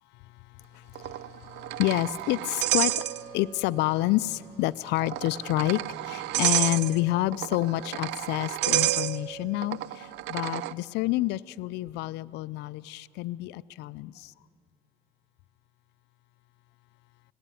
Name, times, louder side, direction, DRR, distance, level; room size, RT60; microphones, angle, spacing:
sound 1, 0.9-3.6 3.9-4.0 4.9-10.7, right 15 dB, 90° right, 0.5 m, -30 dB
voice 1, 1.8-2.9 3.3-5.8 6.1-10.0 10.3-14.1, left 17 dB, 85° left, 17 dB, 0.5 m, -28 dB
24.5 x 17.5 x 9.2 m, 2.5 s
cardioid pair, 110°, 17 cm